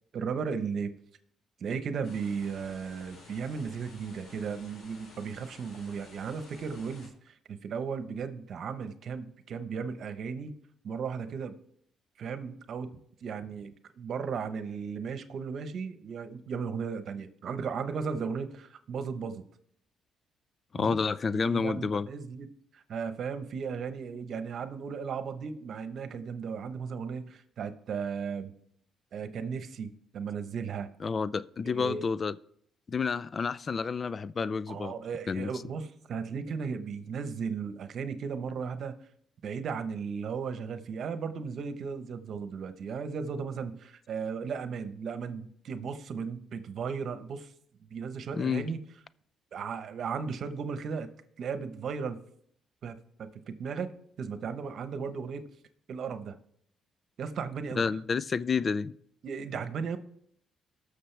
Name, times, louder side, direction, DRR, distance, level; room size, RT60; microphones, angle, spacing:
voice 1, 0.1-1.0 1.6-10.5 10.8-11.6 12.2-19.4 20.8-20.9 21.3-28.5 29.1-30.9 31.7-32.1 34.7-39.0 39.4-47.5 47.9-48.8 49.5-51.1 51.4-52.2 52.8-53.9 54.2-55.5 55.9-56.4 57.2-58.0 59.2-60.0, right 6 dB, 60° right, 1.0 m, -36 dB
sound 1, 2.0-7.1, left 2 dB, 70° left, 4.0 m, -53 dB
voice 2, 20.7-22.1 31.0-32.4 32.9-34.9 35.3-35.5 48.3-48.7 57.7-58.9, left 5 dB, 40° left, 0.4 m, -29 dB
19.5 x 6.5 x 3.4 m
cardioid pair, 90°, 0 cm